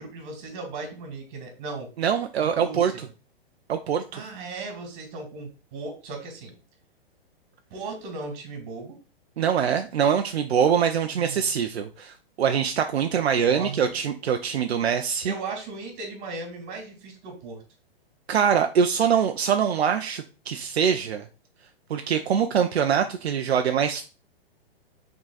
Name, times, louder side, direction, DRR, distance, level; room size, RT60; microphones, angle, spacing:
voice 1, 0.0-1.9 2.4-3.0 4.1-6.5 7.7-8.9 11.1-11.4 13.1-14.0 15.2-17.6, right 3 dB, 40° right, 2 dB, 2.7 m, -37 dB
voice 2, 2.0-2.9 3.7-4.0 9.4-15.3 18.3-21.2 21.9-24.0, right 7 dB, 85° right, 6 dB, 0.7 m, -23 dB
6.2 x 3.9 x 4.0 m, 0.34 s
hypercardioid pair, 135°, 31 cm